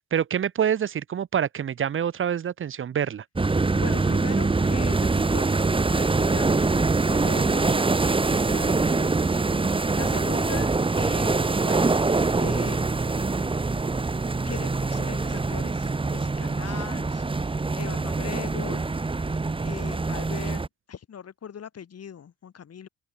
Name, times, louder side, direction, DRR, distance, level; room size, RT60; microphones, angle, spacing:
voice 1, 0.1-3.2, right 8 dB, 45° right, 0.9 m, -26 dB
sound 1, 3.4-20.7, right 3 dB, 15° right, 1.3 m, -24 dB
voice 2, 3.7-9.1 9.5-11.9 12.4-12.8 14.4-17.2 17.8-18.9 19.6-22.9, left 8 dB, 55° left, 6.5 m, -40 dB
open air
cardioid pair, 90°, 30 cm